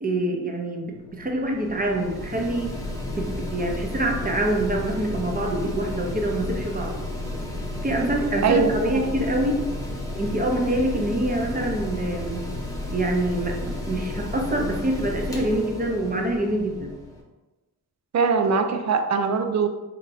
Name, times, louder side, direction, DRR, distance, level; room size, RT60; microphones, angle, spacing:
voice 1, 0.0-2.7 3.1-6.9 7.8-9.6 10.1-12.5 12.9-17.0, right 1 dB, 20° right, 1 dB, 0.8 m, -25 dB
Mechanical fan, 0.9-17.2, left 1 dB, 10° left, 0.9 m, -33 dB
voice 2, 8.4-9.1 18.1-19.7, right 5 dB, 45° right, 6 dB, 0.5 m, -22 dB
4.1 x 2.9 x 2.7 m, 1.1 s
cardioid pair, 60°, 41 cm